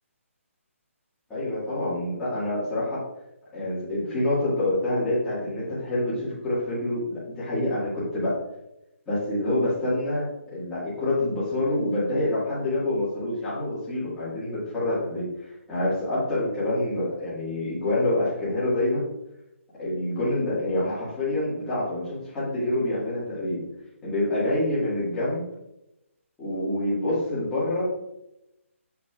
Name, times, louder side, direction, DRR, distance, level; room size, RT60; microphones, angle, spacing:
voice 1, 1.3-3.0 3.5-8.4 9.1-15.3 15.7-19.1 19.8-23.6 24.0-25.5 26.4-27.9, left 1 dB, 5° left, -11 dB, 1.7 m, -27 dB
6.7 x 5.9 x 2.4 m, 0.87 s
hypercardioid pair, 170°, 8 cm